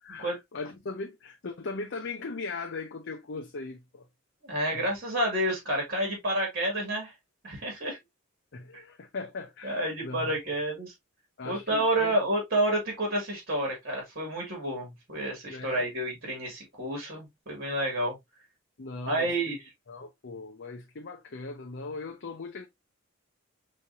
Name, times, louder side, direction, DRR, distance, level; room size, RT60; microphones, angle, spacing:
voice 1, 0.0-4.0 4.7-4.8 8.5-10.3 11.4-12.2 15.5-15.8 18.8-19.6 19.9-22.7, left 3 dB, 55° left, 0.7 m, -39 dB
voice 2, 4.4-7.1 7.4-8.0 8.7-8.8 9.6-10.9 11.4-18.2 19.1-19.6, right 1 dB, 45° right, 2.4 m, -29 dB
5.6 x 3.2 x 2.6 m
head